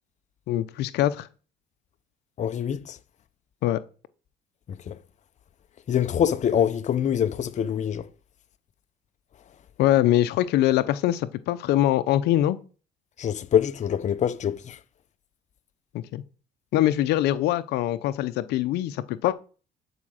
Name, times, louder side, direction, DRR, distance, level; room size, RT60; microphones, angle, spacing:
voice 1, 0.5-1.3 3.6-3.8 9.8-12.6 15.9-16.2 16.7-19.3, left 13 dB, 80° left, 0.7 m, -23 dB
voice 2, 2.4-3.0 4.9-5.0 5.9-8.0 13.2-14.8, left 9 dB, 45° left, 0.8 m, -24 dB
11.0 x 5.1 x 6.5 m
cardioid pair, 110°, 17 cm